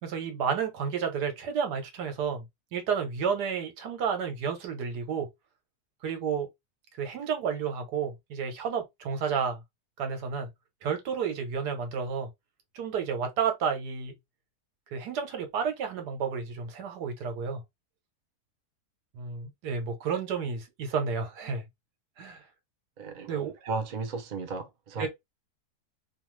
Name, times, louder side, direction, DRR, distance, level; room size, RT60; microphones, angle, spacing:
voice 1, 0.0-2.5 2.7-5.3 6.0-6.5 7.0-9.6 10.0-10.5 10.8-12.3 12.7-14.1 14.9-17.6 19.1-21.6 22.2-22.4 23.3-23.5 25.0-25.1, right 6 dB, 85° right, 1.5 m, -31 dB
voice 2, 23.0-25.1, right 4 dB, 50° right, 0.5 m, -35 dB
3.0 x 2.3 x 3.1 m
omnidirectional pair, 1.7 m